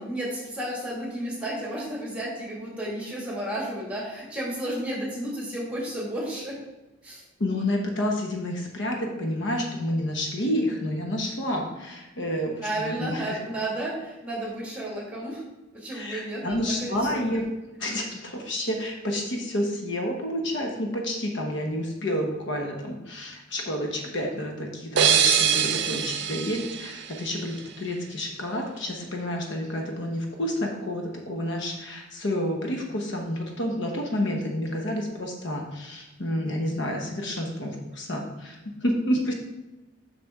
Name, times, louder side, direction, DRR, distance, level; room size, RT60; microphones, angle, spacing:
voice 1, 0.0-6.6 7.0-7.2 12.6-15.4 15.7-17.2, right 1 dB, 5° right, -4 dB, 1.9 m, -32 dB
voice 2, 7.4-13.4 15.9-17.4 17.8-39.3, left 1 dB, 60° left, 2 dB, 1.0 m, -29 dB
sound 1, 25.0-27.7, right 8 dB, 60° right, 0.5 m, -24 dB
6.5 x 5.9 x 3.5 m, 1.0 s
head